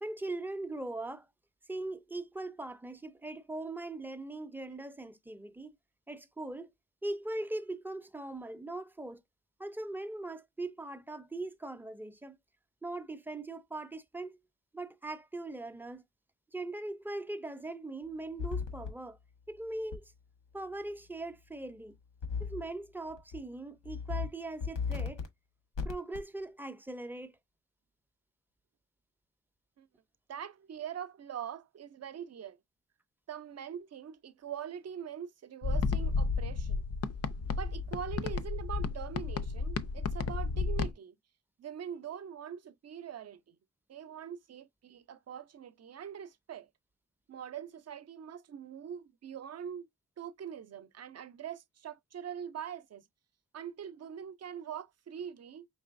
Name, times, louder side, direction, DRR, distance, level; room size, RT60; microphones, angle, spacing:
voice 1, 0.0-1.3 1.7-5.7 6.1-6.7 7.0-9.2 9.6-12.4 12.8-14.4 14.7-16.0 16.5-19.2 19.5-20.1 20.5-21.9 22.4-25.2 25.8-27.3, right 2 dB, 5° right, 0.5 m, -40 dB
sound 1, 18.4-18.9 19.9-20.0 22.2-22.7 23.1-23.4 23.8-24.3 24.6-25.3 25.8-26.2, left 5 dB, 85° left, 1.4 m, -35 dB
voice 2, 30.3-32.6 33.3-36.9 37.5-41.1 41.6-43.6 43.9-46.7 47.3-49.9 50.2-53.0 53.5-55.7, right 8 dB, 55° right, 0.6 m, -43 dB
sound 2, 35.6-40.9, left 4 dB, 50° left, 0.6 m, -32 dB
5.4 x 3.0 x 2.5 m
cardioid pair, 95°, 31 cm